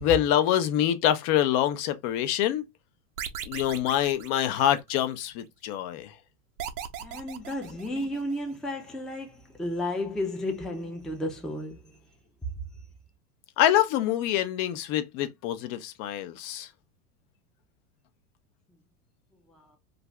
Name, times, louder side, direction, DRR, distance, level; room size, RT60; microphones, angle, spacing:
voice 1, 0.0-2.6 3.5-6.2 13.6-16.7, left 11 dB, 50° left, 0.7 m, -25 dB
sound 1, 3.2-5.1 6.6-8.4, right 9 dB, 85° right, 0.7 m, -38 dB
voice 2, 7.0-12.0 12.4-12.5 19.5-19.8, left 1 dB, ahead, 0.5 m, -33 dB
2.5 x 2.4 x 3.1 m
hypercardioid pair, 105°, 45 cm